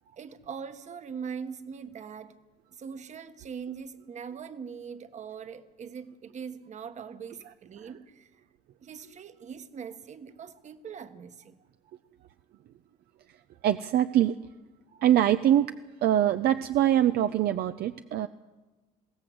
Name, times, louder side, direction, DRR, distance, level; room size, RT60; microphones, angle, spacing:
voice 1, 0.2-2.4 2.7-8.3 8.8-11.6, right 6 dB, 45° right, 10 dB, 1.4 m, -41 dB
voice 2, 13.6-14.3 15.0-15.7 16.0-18.3, right 11 dB, 70° right, 10 dB, 0.6 m, -23 dB
21.0 x 17.0 x 7.9 m, 1.2 s
cardioid pair, 110°, 17 cm